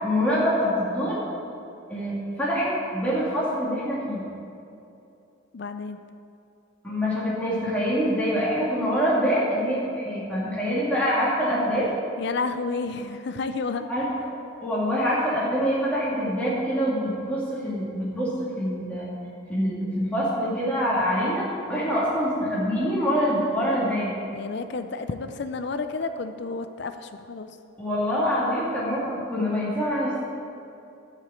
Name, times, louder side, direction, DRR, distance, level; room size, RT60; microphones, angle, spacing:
voice 1, 0.0-1.2 1.9-4.2 6.8-11.9 13.9-14.1 14.6-19.1 19.5-24.2 27.8-30.2, equal, 5° left, -8 dB, 2.6 m, -25 dB
voice 2, 5.5-6.0 12.2-13.9 24.3-27.6, left 4 dB, 55° left, 9 dB, 0.4 m, -31 dB
12.0 x 5.0 x 8.2 m, 2.7 s
head